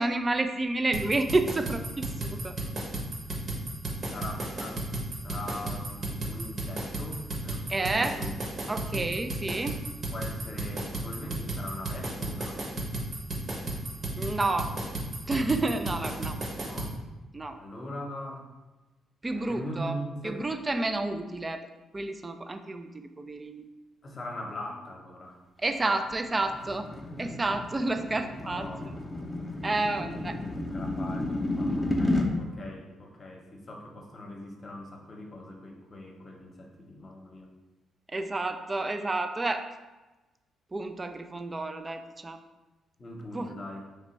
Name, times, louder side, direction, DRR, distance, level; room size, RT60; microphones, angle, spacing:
voice 1, 0.0-2.6 7.7-8.2 8.7-9.8 14.2-14.7 15.3-16.4 17.3-17.6 19.2-20.0 20.2-21.6 21.9-23.6 25.6-26.9 27.2-28.7 29.6-30.3 38.1-39.6 40.7-42.4 43.3-43.5, right 2 dB, 25° right, 7 dB, 0.4 m, -30 dB
sound 1, 0.9-16.9, right 2 dB, 50° right, 1.1 m, -33 dB
voice 2, 4.1-4.9 5.2-8.3 8.6-9.1 10.1-12.7 16.5-16.9 17.6-18.5 19.3-20.4 24.0-25.4 28.4-29.0 29.9-37.5 43.0-43.9, left 1 dB, 35° left, 1 dB, 0.9 m, -41 dB
sound 2, 25.8-32.3, left 1 dB, 10° left, 0.7 m, -32 dB
3.4 x 3.0 x 4.3 m, 1.1 s
cardioid pair, 90°, 0 cm